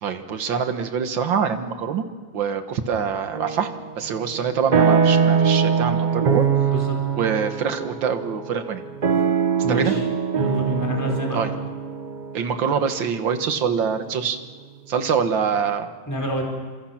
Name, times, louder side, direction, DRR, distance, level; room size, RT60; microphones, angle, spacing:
voice 1, 0.0-2.1 2.3-3.7 4.0-6.5 7.2-8.8 9.7-10.0 11.3-11.5 12.3-14.4 14.9-15.9, right 7 dB, 80° right, 8 dB, 2.2 m, -24 dB
sound 1, 3.3-3.9 4.3-14.3, right 6 dB, 45° right, 0.5 m, -23 dB
voice 2, 9.6-10.0 10.3-11.4 16.1-16.4, left 1 dB, 10° left, -1 dB, 4.6 m, -28 dB
30.0 x 26.5 x 5.9 m, 1.5 s
omnidirectional pair, 2.0 m